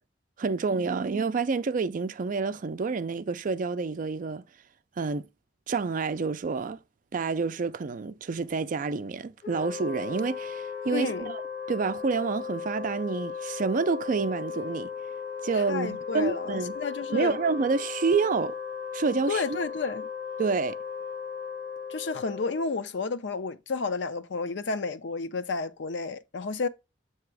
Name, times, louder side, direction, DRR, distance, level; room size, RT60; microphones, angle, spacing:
voice 1, 0.4-4.4 5.0-5.3 5.7-6.8 7.1-11.4 11.7-14.9 15.4-16.8 17.1-18.5 18.9-19.4 20.4-20.8, right 4 dB, 45° right, 0.4 m, -28 dB
Wind instrument woodwind instrument, 9.4-22.8, left 6 dB, 50° left, 1.6 m, -37 dB
voice 2, 10.9-11.3 15.5-17.4 19.3-20.1 21.9-26.7, left 4 dB, 70° left, 0.6 m, -31 dB
7.7 x 2.9 x 4.7 m
head